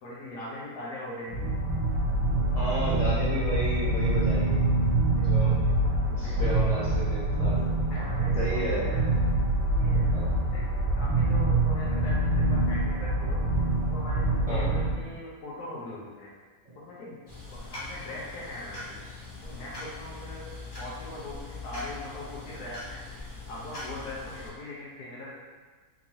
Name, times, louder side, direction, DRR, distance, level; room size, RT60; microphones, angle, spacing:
voice 1, 0.0-1.6 5.1-6.7 7.9-9.0 9.4-9.5 9.8-10.2 10.5-13.6 13.9-16.3 16.9-17.2 17.6-19.0 19.4-23.0 23.5-25.4, left 1 dB, 85° left, -6 dB, 1.3 m, -41 dB
sound 1, 1.3-15.0, right 2 dB, 85° right, 1.2 m, -25 dB
voice 2, 2.5-4.6 5.2-5.7 6.0-7.8 8.4-8.9 10.1-10.3 14.5-14.7, right 1 dB, 60° right, -10 dB, 0.3 m, -32 dB
sound 2, 17.3-24.5, left 2 dB, 40° left, 0.3 m, -41 dB
3.6 x 3.0 x 2.7 m, 1.4 s
omnidirectional pair, 1.6 m